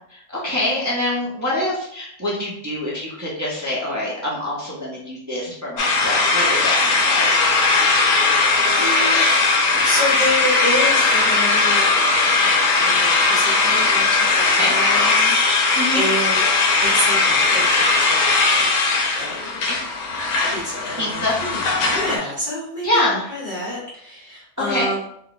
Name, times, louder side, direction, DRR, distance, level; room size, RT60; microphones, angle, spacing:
voice 1, 0.1-7.3 14.6-14.8 15.7-16.0 19.7-19.8 21.0-21.4 22.2-22.3 22.8-23.2 24.6-24.9, left 1 dB, 25° right, -6 dB, 0.3 m, -25 dB
sound 1, 5.8-22.2, left 3 dB, 70° left, 0.9 m, -18 dB
voice 2, 8.6-9.5 9.8-11.8 12.2-16.4 16.8-19.6 20.5-25.0, left 1 dB, 30° left, -9 dB, 1.3 m, -29 dB
2.7 x 2.2 x 3.9 m, 0.71 s
omnidirectional pair, 1.5 m